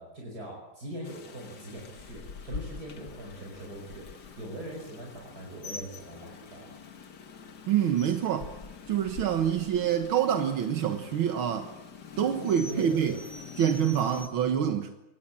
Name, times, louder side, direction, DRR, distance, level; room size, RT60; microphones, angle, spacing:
voice 1, 0.0-6.7 12.7-13.2, right 1 dB, 50° right, -1 dB, 5.9 m, -41 dB
Rain, 1.0-14.3, left 5 dB, 55° left, 2.1 m, -45 dB
voice 2, 7.7-8.5 8.9-11.7 12.2-13.1 13.6-14.9, right 9 dB, 80° right, 7 dB, 2.1 m, -26 dB
24.5 x 18.5 x 8.8 m, 0.96 s
omnidirectional pair, 2.2 m